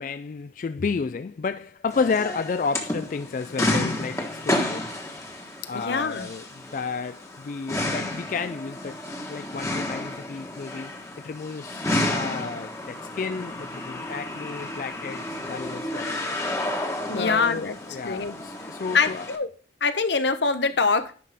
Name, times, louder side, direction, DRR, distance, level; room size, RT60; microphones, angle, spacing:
voice 1, 0.0-4.9 5.7-9.0 9.3-16.4 17.1-19.3, left 5 dB, 45° left, 0.3 m, -31 dB
sound 1, 1.9-19.4, left 1 dB, 15° left, 1.2 m, -31 dB
voice 2, 5.7-6.3 17.1-17.8 18.0-18.3 18.9-19.5 19.8-21.1, left 4 dB, 80° left, 0.9 m, -24 dB
10.5 x 5.8 x 3.4 m
head